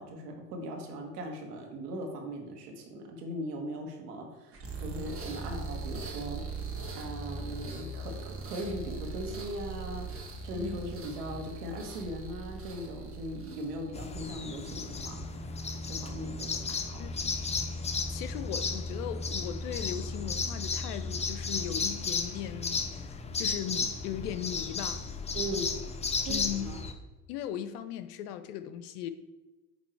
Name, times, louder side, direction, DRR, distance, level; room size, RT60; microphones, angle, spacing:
voice 1, 0.0-6.4 6.9-10.1 10.4-15.2 15.8-17.0 25.3-25.7 26.3-26.8, right 1 dB, 75° right, 1.4 m, -39 dB
sound 1, 4.5-14.5, right 3 dB, 30° right, 1.5 m, -40 dB
sound 2, 13.9-26.9, left 4 dB, 15° left, 0.5 m, -34 dB
voice 2, 17.0-17.3 18.1-25.0 26.3-26.8 27.3-29.1, left 10 dB, 70° left, 0.6 m, -38 dB
8.1 x 2.9 x 4.4 m
hypercardioid pair, 70°, 48 cm